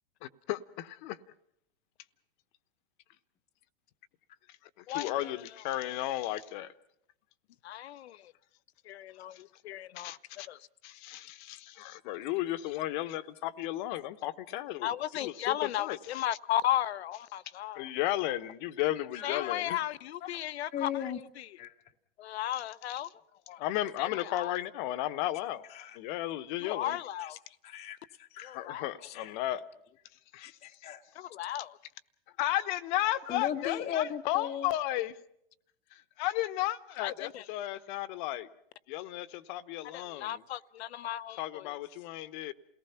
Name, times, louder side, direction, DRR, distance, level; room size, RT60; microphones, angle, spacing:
voice 1, 0.2-1.2 4.9-6.7 10.0-10.5 10.8-14.9 15.2-16.2 17.7-19.8 23.6-25.7 25.9-27.0 28.5-29.6 30.3-30.6 32.4-35.1 35.9-38.5 38.9-40.4 41.4-42.5, left 15 dB, 45° left, 1.1 m, -34 dB
voice 2, 4.9-5.4 7.6-8.3 8.8-10.2 10.5-10.7 14.8-17.9 19.2-21.6 22.2-23.1 24.0-24.5 26.6-27.4 28.4-28.9 31.1-31.8 37.0-37.4 39.9-41.8, left 12 dB, 70° left, 0.8 m, -35 dB
voice 3, 19.0-19.6 20.2-20.3 20.7-21.2 21.6-21.7 23.5-23.6 25.7-26.0 27.2-27.3 27.6-28.6 29.0-29.3 30.4-31.0 33.3-34.7, left 9 dB, 20° left, 1.0 m, -37 dB
28.5 x 18.5 x 5.8 m
hypercardioid pair, 130°, 33 cm